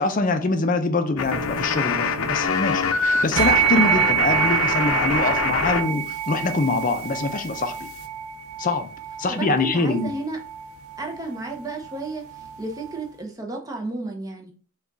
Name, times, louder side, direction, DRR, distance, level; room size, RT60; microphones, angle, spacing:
voice 1, 0.0-7.9 8.6-8.9 9.2-10.1, left 3 dB, 40° left, 0.5 m, -24 dB
sound 1, 1.2-5.8 6.1-8.0, left 5 dB, 85° left, 0.6 m, -25 dB
sound 2, 3.4-13.0, right 11 dB, 85° right, 0.6 m, -27 dB
voice 2, 9.3-10.4 11.0-12.2 12.6-14.5, right 2 dB, 15° right, 0.6 m, -32 dB
5.0 x 2.3 x 3.9 m
head